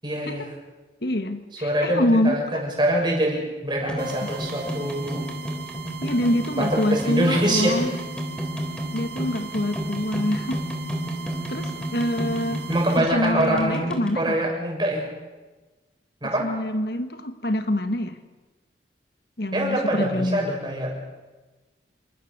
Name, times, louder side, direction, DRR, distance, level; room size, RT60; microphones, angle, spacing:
voice 1, 0.0-0.5 1.6-5.3 6.6-7.8 12.7-15.1 16.2-16.5 19.5-21.0, right 1 dB, 25° right, 0 dB, 6.7 m, -24 dB
voice 2, 1.0-2.4 4.2-4.3 6.0-7.9 8.9-10.6 11.5-12.6 13.0-14.4 16.4-18.2 19.4-20.5, left 1 dB, 60° left, 8 dB, 1.6 m, -25 dB
sound 1, 3.8-14.1, equal, 5° left, 3.3 m, -32 dB
sound 2, 4.0-13.0, right 7 dB, 60° right, 1.7 m, -40 dB
27.5 x 25.0 x 6.8 m, 1.2 s
head